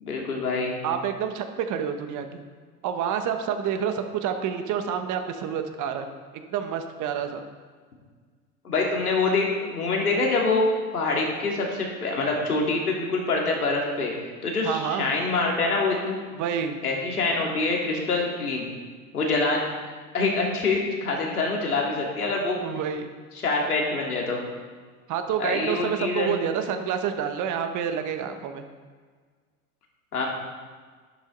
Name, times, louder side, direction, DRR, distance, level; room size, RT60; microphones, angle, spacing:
voice 1, 0.0-0.8 8.6-10.7 10.9-16.2 16.8-18.7 19.1-19.6 20.1-22.6 23.4-24.4 25.4-26.4 30.1-30.3, left 3 dB, 90° left, -1 dB, 2.7 m, -25 dB
voice 2, 0.8-2.4 2.8-6.1 6.3-7.4 14.6-15.1 16.4-16.8 22.6-23.1 25.1-28.6, right 8 dB, 45° right, 7 dB, 1.4 m, -28 dB
12.0 x 10.5 x 4.0 m, 1.6 s
hypercardioid pair, 85°, 44 cm